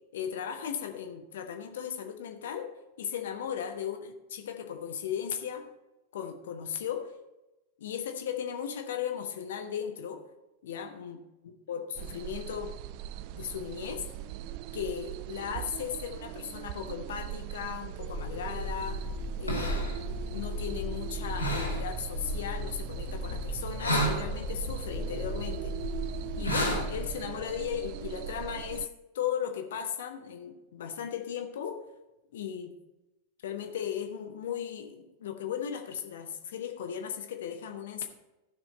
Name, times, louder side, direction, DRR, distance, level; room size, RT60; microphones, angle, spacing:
voice 1, 0.1-2.7 3.0-5.7 6.1-7.1 7.8-10.2 10.6-11.2 11.7-12.7 13.3-14.1 14.7-19.1 19.4-19.8 20.3-25.8 26.4-28.9 29.1-31.8 32.3-32.7 33.4-38.1, left 8 dB, 60° left, 7 dB, 1.1 m, -36 dB
sound 1, 12.0-28.9, right 13 dB, 45° right, 0.3 m, -41 dB
sound 2, 18.1-27.1, equal, 85° left, 2.4 m, -33 dB
14.5 x 6.2 x 4.1 m, 1.0 s
figure-of-eight pair, 90°, 0 cm